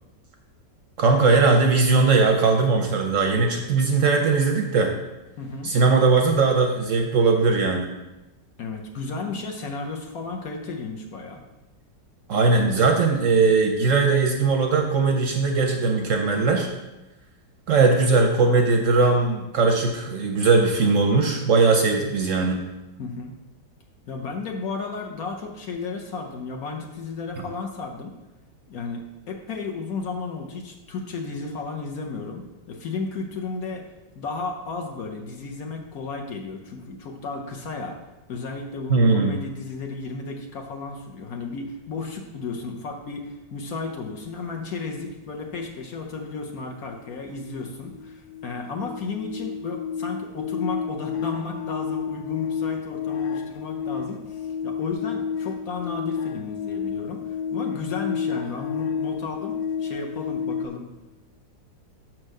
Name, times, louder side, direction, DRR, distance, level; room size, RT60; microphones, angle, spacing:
voice 1, 1.0-4.9 5.6-7.9 12.3-16.7 17.7-22.6 38.9-39.4, right 4 dB, 60° right, 3 dB, 0.8 m, -19 dB
voice 2, 5.4-5.7 8.6-11.4 23.0-23.3 24.1-28.1 28.7-33.9 34.1-38.0 38.3-60.9, left 4 dB, 60° left, 2 dB, 1.1 m, -33 dB
sound 1, 47.1-47.2 47.5-60.7, left 7 dB, 75° left, 0.7 m, -31 dB
6.0 x 4.6 x 6.3 m, 1.0 s
omnidirectional pair, 1.9 m